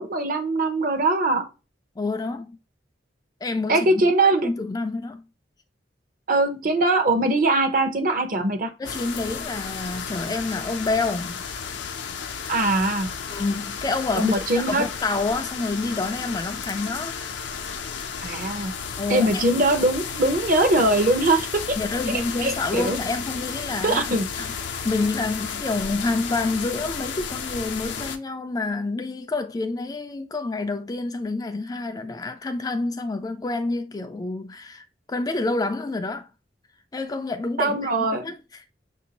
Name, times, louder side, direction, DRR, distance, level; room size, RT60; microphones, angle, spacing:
voice 1, 0.0-1.5 3.7-4.5 6.3-8.7 12.5-13.1 14.2-14.9 18.2-18.7 19.1-21.8 22.4-23.0 23.8-24.2 37.6-38.3, right 2 dB, 50° right, 0.8 m, -21 dB
voice 2, 2.0-2.6 3.4-4.1 4.4-5.2 8.8-11.4 13.3-17.3 18.2-18.4 19.0-19.5 21.8-24.6 24.8-36.3 36.9-38.6, left 3 dB, 20° left, 0.3 m, -28 dB
sound 1, 8.8-28.2, left 6 dB, 80° left, 0.5 m, -33 dB
5.9 x 2.7 x 2.8 m
head